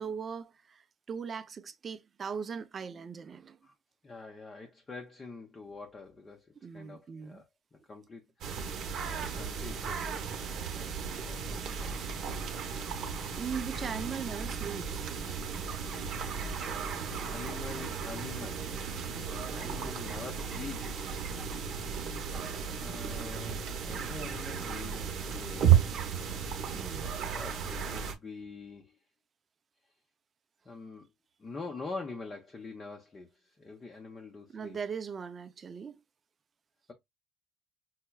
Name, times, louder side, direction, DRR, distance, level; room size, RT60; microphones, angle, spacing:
voice 1, 0.0-3.6 6.6-7.4 13.4-15.1 19.6-19.9 26.7-27.1 34.5-36.0, right 6 dB, 30° right, 0.4 m, -39 dB
voice 2, 4.0-6.5 6.7-7.5 7.9-10.2 10.7-12.0 12.2-12.7 17.3-18.7 19.5-21.2 22.8-25.8 27.3-29.0 30.7-31.1 31.4-34.8, left 4 dB, 20° left, 0.6 m, -45 dB
sound 1, 8.4-28.1, right 8 dB, 55° right, 0.8 m, -33 dB
5.6 x 2.1 x 2.2 m
cardioid pair, 140°, 0 cm